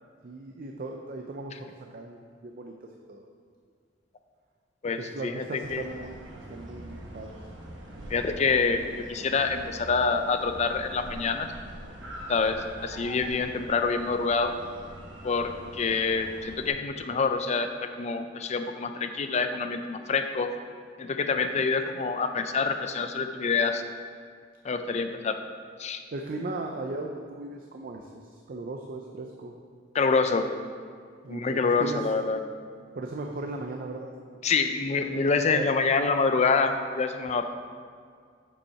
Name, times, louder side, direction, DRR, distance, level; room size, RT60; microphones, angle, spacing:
voice 1, 0.2-3.3 5.0-6.2 6.5-7.4 26.1-29.5 31.2-32.0 33.0-34.4 35.0-35.7, right 2 dB, 50° right, 2 dB, 0.5 m, -37 dB
voice 2, 4.8-5.8 8.1-11.5 12.3-14.6 15.2-20.5 21.0-23.8 24.6-25.4 25.8-26.0 29.9-30.5 31.3-32.4 34.4-37.5, left 4 dB, 35° left, 8 dB, 0.4 m, -26 dB
sound 1, 5.6-16.7, equal, 80° right, 1.1 m, -44 dB
7.1 x 5.4 x 4.7 m, 2.1 s
head